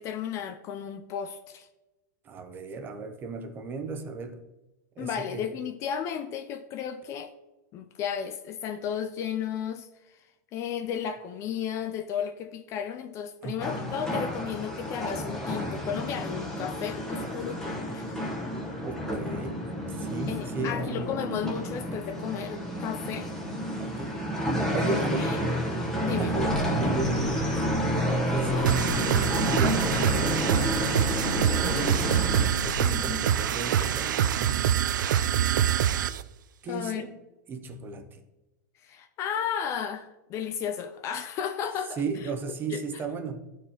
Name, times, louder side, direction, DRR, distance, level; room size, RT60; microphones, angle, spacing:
voice 1, 0.0-1.7 5.0-7.3 7.7-9.9 10.5-18.1 20.3-23.3 24.8-25.4 25.9-26.3 28.5-28.6 32.8-33.3 36.1-36.2 36.7-37.0 38.8-42.0 42.7-42.8, left 8 dB, 30° left, 0.4 m, -34 dB
voice 2, 2.2-4.4 5.0-5.5 13.4-13.9 18.8-21.2 23.8-24.2 24.6-25.4 26.2-32.1 32.6-34.7 36.6-37.1 37.5-38.2 42.0-43.4, right 3 dB, 20° right, 0.6 m, -35 dB
sound 1, 13.6-32.5, equal, 5° left, 0.9 m, -30 dB
sound 2, 26.3-33.0, left 1 dB, 55° left, 1.1 m, -36 dB
sound 3, 28.6-36.2, right 10 dB, 85° right, 0.4 m, -25 dB
12.5 x 4.6 x 2.9 m
supercardioid pair, 145°, 10 cm